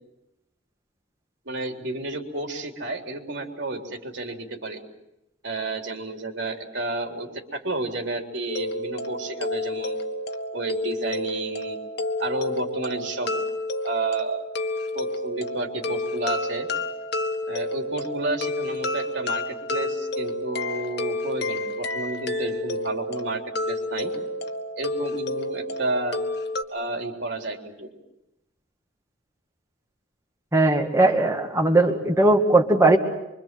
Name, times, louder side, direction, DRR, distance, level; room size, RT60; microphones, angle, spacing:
voice 1, 1.5-4.8 5.4-10.0 10.5-11.8 12.2-13.3 13.8-14.4 14.9-16.7 17.5-23.4 23.7-24.1 24.8-26.2 26.7-27.9, right 2 dB, 65° right, 2 dB, 3.6 m, -31 dB
sound 1, 8.5-26.6, left 1 dB, 60° left, 1.7 m, -30 dB
voice 2, 30.5-33.0, right 2 dB, 15° right, 1 dB, 2.0 m, -19 dB
25.5 x 25.0 x 7.7 m, 0.90 s
head